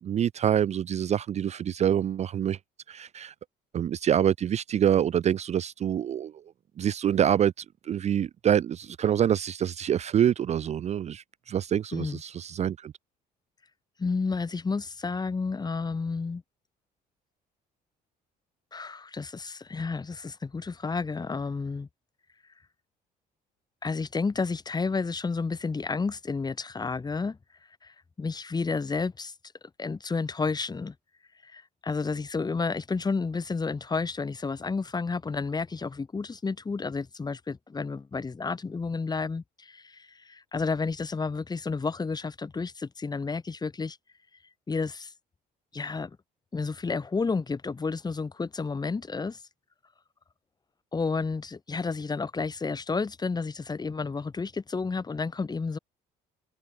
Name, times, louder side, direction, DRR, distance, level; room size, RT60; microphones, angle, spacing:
voice 1, 0.0-2.6 2.9-3.3 3.7-6.3 6.8-12.9, right 9 dB, 40° right, 0.5 m, -26 dB
voice 2, 14.0-16.4 18.7-21.9 23.8-27.4 27.8-29.3 29.8-30.9 31.4-44.0 44.7-45.1 45.7-46.1 46.5-49.4 50.9-55.8, left 4 dB, 25° left, 4.0 m, -31 dB
cardioid pair, 110°, 17 cm